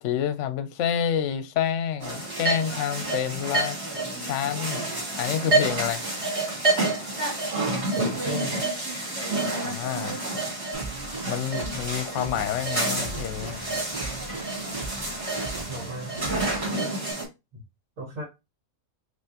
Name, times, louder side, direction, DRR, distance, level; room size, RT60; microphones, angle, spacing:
voice 1, 0.0-3.8 4.2-6.0 9.6-10.2 11.3-13.6, left 9 dB, 65° left, 0.9 m, -28 dB
sound 1, 2.0-17.2, right 2 dB, 50° right, 2.7 m, -29 dB
voice 2, 7.7-8.6 15.7-16.5 17.5-17.6 18.0-18.2, right 1 dB, 70° right, 1.8 m, -35 dB
sound 2, 10.7-17.1, right 2 dB, 15° right, 2.7 m, -38 dB
5.5 x 3.0 x 2.8 m
omnidirectional pair, 1.4 m